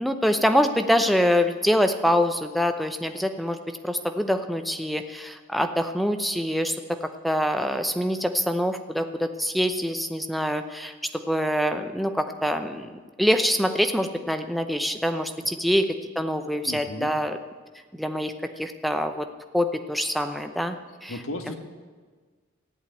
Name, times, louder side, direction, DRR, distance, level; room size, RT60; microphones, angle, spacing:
voice 1, 0.0-6.8 7.2-17.4 17.9-19.3 19.5-20.8 21.0-21.2 21.4-21.5, equal, ahead, 7 dB, 0.7 m, -25 dB
voice 2, 16.6-17.1 21.1-21.5, left 1 dB, 80° left, 5 dB, 1.4 m, -34 dB
14.5 x 8.0 x 9.5 m, 1.5 s
head